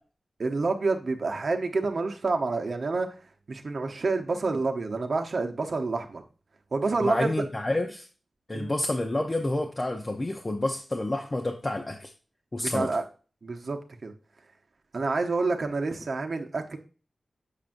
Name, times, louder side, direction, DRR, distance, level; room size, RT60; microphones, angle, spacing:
voice 1, 0.4-3.1 3.5-6.2 6.7-7.3 8.5-8.7 12.6-13.0 13.4-14.1 14.9-16.8, right 3 dB, 55° right, 4 dB, 0.8 m, -28 dB
voice 2, 7.0-8.1 8.5-12.1 12.5-12.9, left 1 dB, 25° left, 2 dB, 0.7 m, -29 dB
7.3 x 6.6 x 2.6 m, 0.36 s
wide cardioid pair, 130°, 0 cm